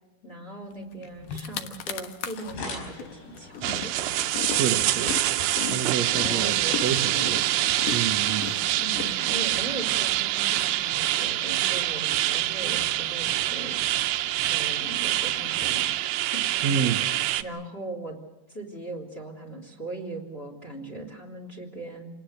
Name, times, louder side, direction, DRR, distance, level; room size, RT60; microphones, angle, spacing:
voice 1, 0.2-4.1 6.0-7.7 8.8-13.8 14.5-16.4 17.4-18.2 18.5-22.1, right 2 dB, 15° left, 4 dB, 3.0 m, -39 dB
sound 1, 0.9-1.0 1.2-2.5 3.0-9.7, left 9 dB, 60° left, 2.2 m, -36 dB
sound 2, 1.0-8.9, left 3 dB, 80° left, 7.3 m, -45 dB
sound 3, 3.6-17.4, right 14 dB, 85° right, 3.1 m, -26 dB
voice 2, 4.6-5.4 5.7-7.4 7.9-8.5 16.6-17.0, right 7 dB, 70° right, 4 dB, 1.7 m, -29 dB
28.0 x 19.5 x 6.6 m, 0.97 s
omnidirectional pair, 4.9 m